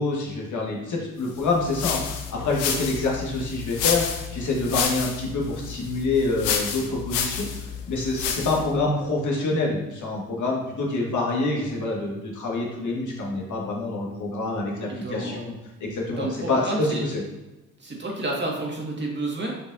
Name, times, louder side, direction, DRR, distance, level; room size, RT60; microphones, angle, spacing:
voice 1, 0.0-7.5 7.9-15.5 15.8-17.2, left 2 dB, 55° left, -2 dB, 1.9 m, -26 dB
sound 1, 1.4-8.7, left 7 dB, 80° left, 0.7 m, -30 dB
voice 2, 14.9-15.4 16.2-17.0 17.8-19.5, right 2 dB, 30° right, -2 dB, 2.0 m, -30 dB
6.6 x 5.3 x 2.7 m, 1.0 s
hypercardioid pair, 45°, 36 cm